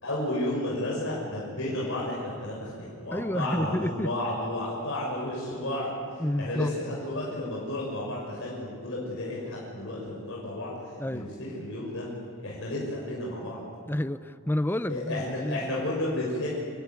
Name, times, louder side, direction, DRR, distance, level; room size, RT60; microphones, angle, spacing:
voice 1, 0.0-10.7 11.1-11.3 11.5-12.1 12.4-13.6 14.9-16.5, left 1 dB, 60° left, -4 dB, 6.7 m, -32 dB
voice 2, 3.1-4.1 6.2-6.7 11.0-11.3 13.8-15.6, left 1 dB, 10° left, 13 dB, 0.6 m, -29 dB
27.5 x 21.5 x 9.6 m, 2.3 s
head